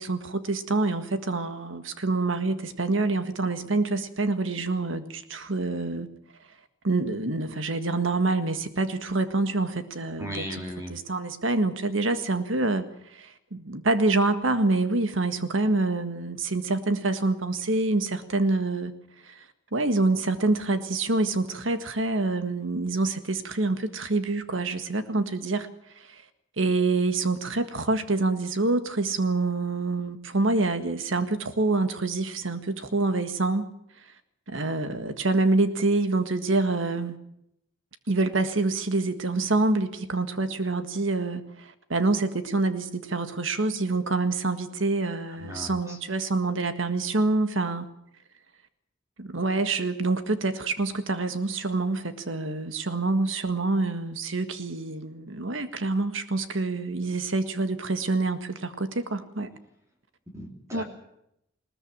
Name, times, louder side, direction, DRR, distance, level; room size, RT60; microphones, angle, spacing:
voice 1, 0.0-6.1 6.8-10.6 10.9-18.9 19.3-19.4 19.7-25.7 26.0-26.2 26.6-33.7 34.5-37.1 38.1-47.8 49.2-59.5 60.7-60.8, right 3 dB, 75° right, 9 dB, 1.7 m, -26 dB
voice 2, 10.2-11.0 45.4-46.0 60.3-60.8, equal, 15° right, 1 dB, 2.9 m, -37 dB
20.5 x 19.0 x 7.5 m, 0.79 s
head